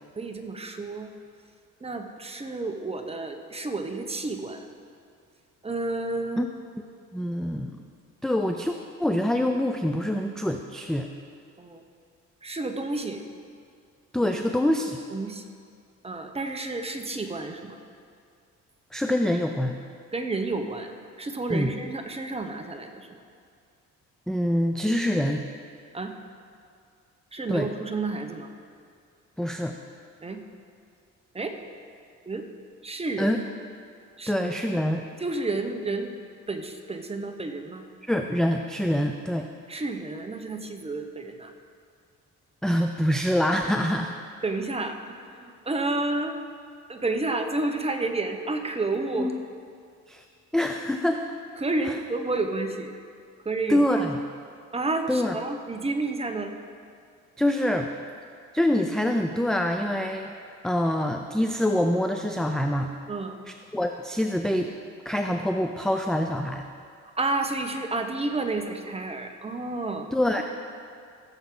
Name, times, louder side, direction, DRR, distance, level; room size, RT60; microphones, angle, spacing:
voice 1, 0.2-1.1 1.8-4.7 5.6-6.5 11.6-11.8 12.4-13.2 14.2-14.3 15.1-15.5 16.0-17.7 20.1-20.9 21.2-23.2 25.9-26.1 27.3-28.5 30.2-30.4 31.3-31.6 32.3-32.5 32.8-33.4 34.2-34.3 35.2-36.1 36.5-37.9 39.7-41.5 44.4-45.0 45.3-46.4 46.9-49.4 51.6-52.9 53.4-53.8 54.7-56.5 63.1-63.4 67.1-70.4, right 2 dB, 20° right, 5 dB, 1.0 m, -30 dB
voice 2, 7.1-7.7 8.2-8.7 9.0-11.1 14.1-15.0 18.9-19.8 21.5-21.7 24.3-25.4 27.5-27.7 29.4-29.8 33.2-33.4 34.3-35.0 38.1-39.5 42.6-44.2 49.2-49.3 50.1-50.2 50.5-51.2 51.9-52.0 53.7-54.2 55.1-55.4 57.4-57.9 58.5-60.3 60.6-62.9 63.5-64.7 65.1-66.7 70.1-70.4, left 1 dB, ahead, 4 dB, 0.5 m, -25 dB
16.5 x 7.1 x 3.9 m, 2.3 s
cardioid pair, 90°, 30 cm